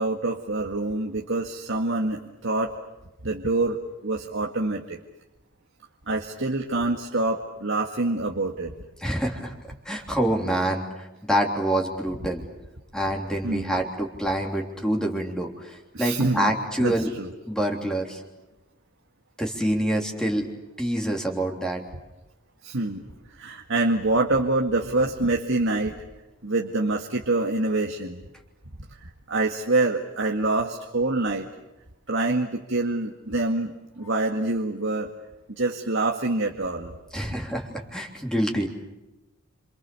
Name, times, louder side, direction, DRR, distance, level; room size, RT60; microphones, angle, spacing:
voice 1, 0.0-2.7 3.2-5.0 6.1-8.7 13.4-13.8 15.9-17.3 22.6-23.0 23.3-25.9 26.4-28.2 28.9-31.5 32.1-35.1 35.5-36.9, right 2 dB, 60° right, 1 dB, 2.1 m, -26 dB
voice 2, 9.0-9.5 9.8-12.4 12.9-17.1 17.5-18.2 19.4-20.5 20.8-21.8 37.1-38.7, right 1 dB, 5° left, 1 dB, 3.3 m, -26 dB
29.5 x 27.5 x 7.0 m, 0.99 s
head